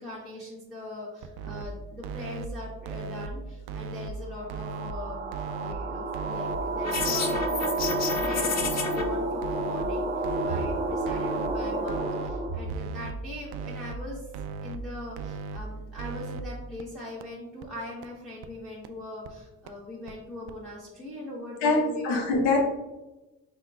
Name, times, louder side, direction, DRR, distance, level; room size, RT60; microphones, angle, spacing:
voice 1, 0.0-7.5 7.8-14.2 14.6-22.2, left 1 dB, ahead, -7 dB, 1.2 m, -41 dB
sound 1, 1.2-1.6 2.0-2.5 2.9-3.3 3.7-4.1 4.5-4.9 5.3-5.7 6.1-6.6 7.0-7.4 7.8-8.2 8.6-9.0 9.4-9.9 10.2-10.7 11.1-11.5 11.9-12.3 12.7-13.1 13.5-14.0 14.3-14.8 15.2-15.6 16.0-16.4 16.8-16.9 17.2-17.3 17.6-17.7 18.0-18.1 18.4-18.5 18.8-18.9 19.3-19.4 19.7-19.8 20.1-20.2 20.5-20.6, right 5 dB, 60° right, 0.5 m, -37 dB
sound 2, 4.3-12.7, right 2 dB, 15° right, 0.6 m, -30 dB
sound 3, 6.8-9.0, left 5 dB, 35° left, 0.7 m, -31 dB
voice 2, 21.6-22.6, left 3 dB, 75° left, 1 dB, 1.0 m, -24 dB
4.3 x 3.7 x 2.3 m, 1.1 s
hypercardioid pair, 60°, 46 cm